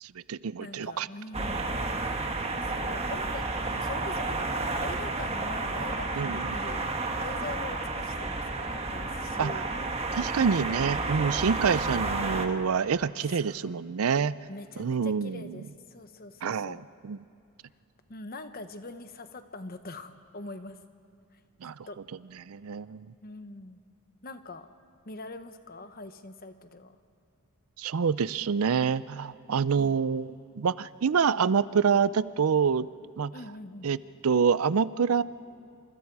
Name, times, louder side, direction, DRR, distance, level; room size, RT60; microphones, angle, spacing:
voice 1, 0.0-1.1 6.2-6.4 9.4-9.5 10.1-14.4 14.8-15.5 16.4-16.8 17.0-17.2 21.6-21.7 22.5-23.1 27.8-32.9 33.2-33.3 33.8-34.0 34.2-35.2, right 6 dB, 75° right, 17 dB, 0.5 m, -26 dB
voice 2, 0.6-1.8 2.6-9.7 11.9-12.3 13.3-13.8 14.5-16.8 18.1-20.8 21.3-22.0 23.2-23.8 24.2-24.7 25.0-27.0 29.7-30.0 33.3-33.9, left 2 dB, 40° left, 9 dB, 1.1 m, -43 dB
sound 1, 1.3-12.5, right 3 dB, 30° right, 1.4 m, -31 dB
28.0 x 26.5 x 4.8 m, 2.6 s
head